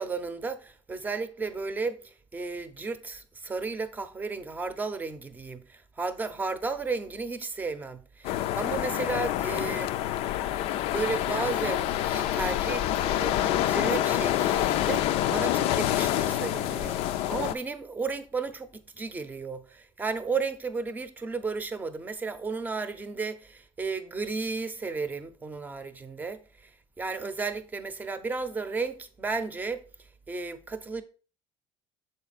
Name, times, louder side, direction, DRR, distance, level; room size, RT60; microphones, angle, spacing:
voice 1, 0.0-9.9 10.9-26.7 27.0-29.8 30.3-31.0, right 4 dB, 15° right, 0.7 m, -34 dB
sound 1, 8.2-17.5, left 12 dB, 70° left, 0.4 m, -27 dB
6.8 x 4.3 x 4.0 m
cardioid pair, 135°, 11 cm